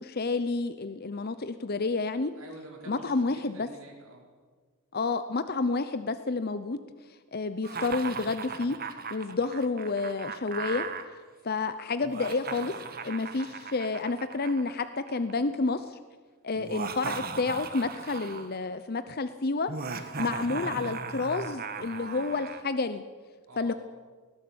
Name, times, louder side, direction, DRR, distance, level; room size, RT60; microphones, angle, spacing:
voice 1, 0.0-2.3 2.9-3.7 4.9-6.8 7.0-8.8 9.1-10.9 11.4-12.8 13.0-16.0 16.4-23.0 23.6-23.7, left 3 dB, 45° left, 11 dB, 0.7 m, -30 dB
voice 2, 2.4-4.2 23.5-23.8, right 1 dB, 70° right, 0 dB, 5.4 m, -47 dB
Laughter, 7.6-11.0 12.0-15.3 16.6-18.6 19.7-22.6, right 5 dB, 45° right, 1.5 m, -38 dB
19.5 x 17.5 x 8.6 m, 1.5 s
head